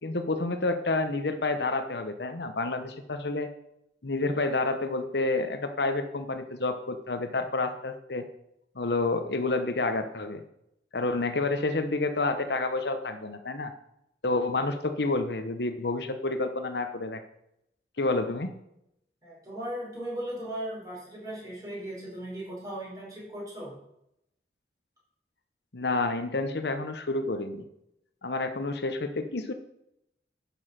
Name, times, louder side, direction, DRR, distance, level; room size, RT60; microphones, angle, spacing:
voice 1, 0.0-3.5 4.0-8.3 8.7-10.4 10.9-13.7 14.2-17.2 18.0-18.5 25.7-27.6 28.2-29.5, left 2 dB, 75° left, 8 dB, 1.0 m, -29 dB
voice 2, 19.2-23.7, right 1 dB, 20° right, -5 dB, 5.0 m, -37 dB
11.0 x 7.3 x 5.8 m, 0.80 s
head